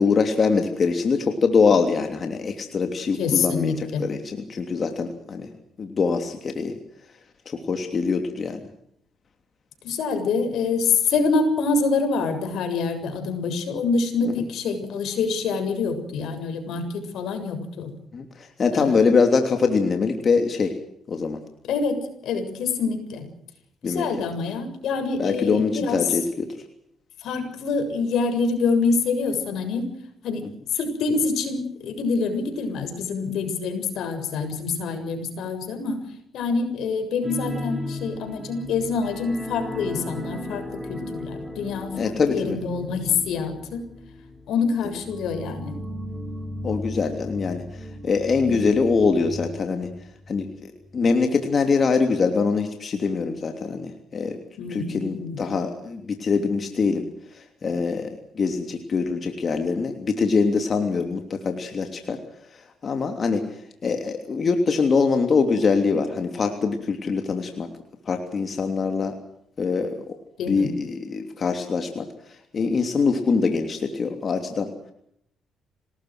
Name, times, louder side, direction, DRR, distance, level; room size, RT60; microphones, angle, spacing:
voice 1, 0.0-5.5 5.8-6.8 7.5-8.6 14.3-14.4 18.1-20.7 21.1-21.4 23.8-24.1 25.2-26.5 41.9-42.6 46.6-47.6 48.0-49.9 50.3-54.4 54.7-57.0 57.6-62.2 62.8-63.4 63.8-67.7 68.1-69.1 69.6-70.0 70.5-72.0 72.5-74.7, left 4 dB, 45° left, 5 dB, 3.0 m, -23 dB
voice 2, 3.1-4.0 9.8-17.9 18.7-19.0 21.6-22.0 22.2-23.3 23.8-26.2 27.2-29.9 30.2-30.4 30.7-36.0 36.3-43.8 44.5-45.8 48.5-48.8 54.6-55.6 70.4-70.7, left 4 dB, 80° left, 7 dB, 7.1 m, -26 dB
sound 1, 37.2-50.5 50.8-51.0 51.4-51.5, left 1 dB, 5° right, 5.2 m, -36 dB
27.5 x 19.5 x 6.4 m, 0.72 s
cardioid pair, 90°, 0 cm